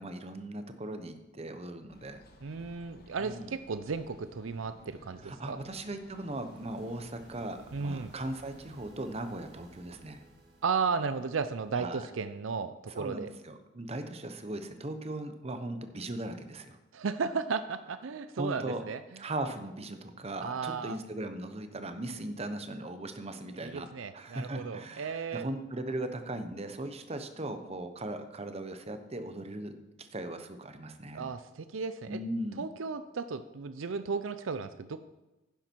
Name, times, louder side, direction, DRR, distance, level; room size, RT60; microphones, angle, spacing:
voice 1, 0.0-2.2 3.2-3.6 5.2-10.2 11.7-12.1 12.9-16.8 18.3-18.9 19.2-23.9 24.1-29.7 30.0-31.3 32.1-32.7, right 1 dB, 30° right, 8 dB, 0.9 m, -38 dB
sound 1, 1.9-8.9, left 1 dB, 50° left, 1.3 m, -58 dB
voice 2, 2.4-5.6 7.7-8.1 10.6-13.3 16.9-19.0 20.4-21.0 23.6-25.5 31.1-32.2 32.6-35.0, right 5 dB, 75° right, 12 dB, 0.5 m, -34 dB
sound 2, 4.0-12.5, right 1 dB, 55° right, 1.8 m, -59 dB
10.5 x 10.5 x 4.5 m, 1.0 s
head